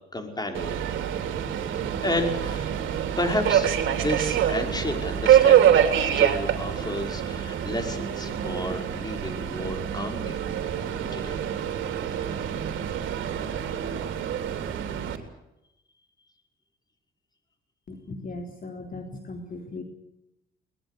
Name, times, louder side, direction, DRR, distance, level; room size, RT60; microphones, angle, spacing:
voice 1, 0.1-0.8 2.0-2.8 3.2-10.4 11.1-11.4, left 1 dB, 20° left, 4 dB, 5.5 m, -31 dB
Subway metro underground, 0.5-15.2, right 9 dB, 75° right, 3.4 m, -25 dB
voice 2, 17.9-19.8, left 2 dB, 45° left, 4 dB, 3.7 m, -38 dB
22.0 x 20.5 x 8.3 m, 0.90 s
cardioid pair, 90°, 20 cm